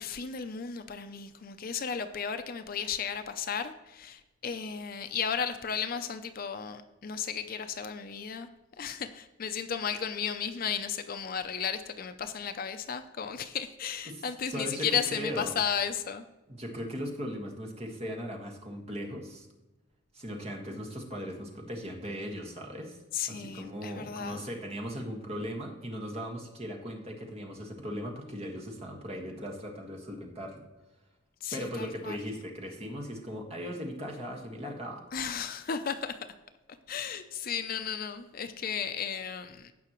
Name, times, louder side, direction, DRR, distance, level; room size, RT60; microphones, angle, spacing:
voice 1, 0.0-8.5 8.8-16.2 23.1-24.5 31.4-32.2 35.1-36.3 36.9-39.7, left 7 dB, 45° left, 9 dB, 0.5 m, -34 dB
voice 2, 14.0-15.5 16.5-19.5 20.1-23.0 23.3-30.6 31.5-35.0, equal, 30° right, 1 dB, 1.6 m, -38 dB
16.5 x 5.8 x 3.0 m, 1.0 s
head